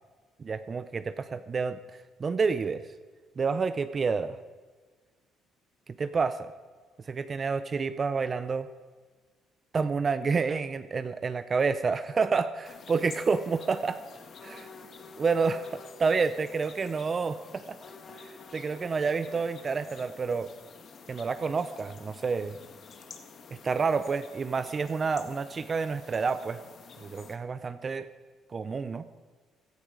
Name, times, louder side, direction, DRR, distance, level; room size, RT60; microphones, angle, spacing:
voice 1, 0.4-1.8 2.2-2.8 3.4-4.4 6.0-6.5 7.1-8.7 9.7-14.0 14.4-14.7 15.2-17.8 18.5-20.5 21.1-22.5 23.6-26.6 27.0-28.1 28.5-29.0, right 5 dB, 35° right, 12 dB, 0.6 m, -29 dB
sound 1, 12.6-27.4, left 5 dB, 50° left, 1.5 m, -49 dB
16.5 x 12.5 x 4.9 m, 1.4 s
cardioid pair, 95°, 0 cm